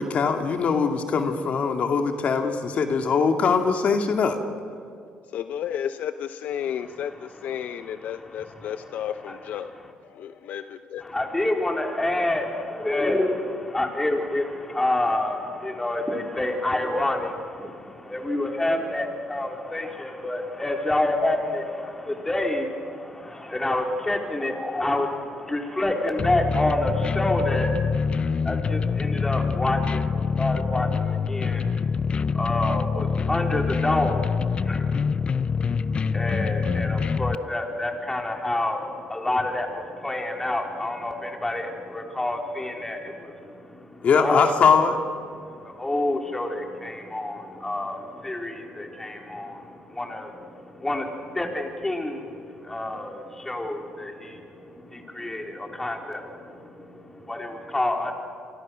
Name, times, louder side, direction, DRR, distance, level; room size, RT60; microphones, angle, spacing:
voice 1, 0.0-4.4 44.0-45.0, left 5 dB, 55° left, 5 dB, 2.2 m, -21 dB
voice 2, 5.3-9.7 10.1-11.0, left 9 dB, 70° left, 10 dB, 0.8 m, -32 dB
voice 3, 6.6-8.8 9.3-9.4 11.0-44.5 45.4-58.1, left 1 dB, 15° left, 2 dB, 3.9 m, -28 dB
sound 1, 26.2-37.4, left 5 dB, 40° left, 0.6 m, -25 dB
28.5 x 24.0 x 6.4 m, 2.4 s
cardioid pair, 95°, 3 cm